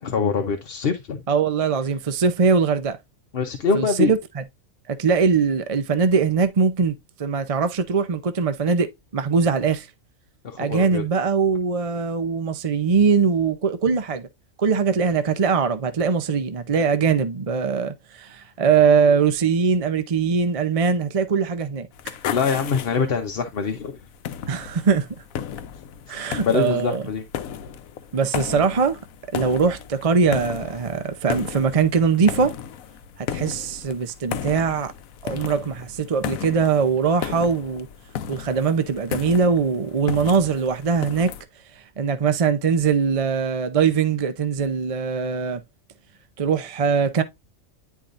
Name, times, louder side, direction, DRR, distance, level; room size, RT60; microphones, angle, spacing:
voice 1, 0.0-1.2 3.3-4.1 10.4-11.0 22.3-24.0 26.1-27.2, left 5 dB, 50° left, 1.0 m, -24 dB
voice 2, 1.3-3.0 3.7-4.4 4.9-6.9 7.2-9.9 10.6-14.3 14.6-22.1 24.5-25.1 26.1-27.0 28.1-29.0 29.3-32.5 33.2-34.9 35.2-37.9 38.3-41.3 42.0-45.6 46.4-47.2, right 5 dB, 40° right, 0.5 m, -21 dB
sound 1, 21.9-41.4, left 9 dB, 85° left, 1.1 m, -34 dB
10.0 x 4.6 x 2.5 m
omnidirectional pair, 1.4 m